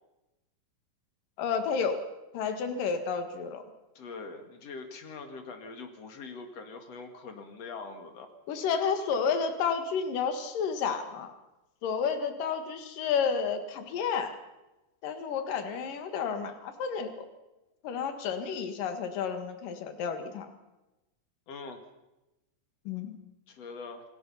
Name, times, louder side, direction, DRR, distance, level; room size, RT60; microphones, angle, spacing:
voice 1, 1.4-2.0 2.3-3.6 8.5-11.3 11.8-14.4 15.0-17.3 17.8-20.5 22.9-23.2, left 6 dB, 75° left, 7 dB, 3.4 m, -31 dB
voice 2, 3.9-8.3 21.5-21.8 23.5-24.0, left 4 dB, 50° left, 6 dB, 3.1 m, -43 dB
27.5 x 18.5 x 5.7 m, 0.99 s
omnidirectional pair, 3.9 m